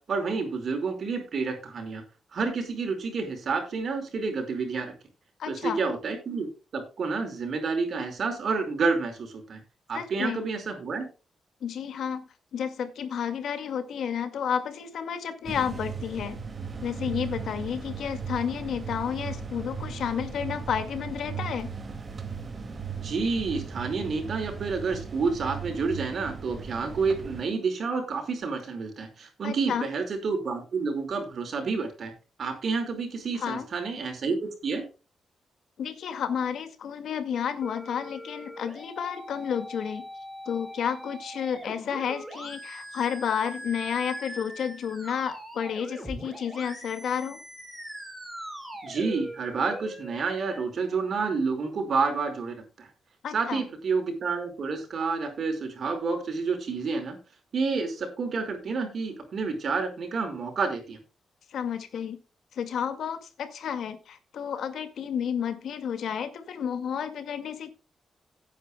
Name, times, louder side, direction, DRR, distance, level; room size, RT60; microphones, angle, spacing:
voice 1, 0.1-2.0 2.3-4.9 5.5-6.5 6.7-9.6 9.9-11.1 23.0-32.1 32.4-34.8 48.8-52.9 53.3-57.2 57.5-61.0, right 4 dB, 60° right, 6 dB, 5.1 m, -29 dB
voice 2, 5.4-5.8 9.9-10.4 11.6-16.4 16.8-21.7 29.4-29.9 33.4-33.7 35.8-40.1 40.5-47.4 53.2-53.6 61.5-62.2 62.5-67.7, left 8 dB, 80° left, 9 dB, 2.1 m, -31 dB
sound 1, 15.4-27.4, right 6 dB, 35° right, 2.3 m, -37 dB
sound 2, 37.6-50.6, equal, 10° right, 4.9 m, -41 dB
17.5 x 9.6 x 2.3 m, 0.32 s
cardioid pair, 110°, 0 cm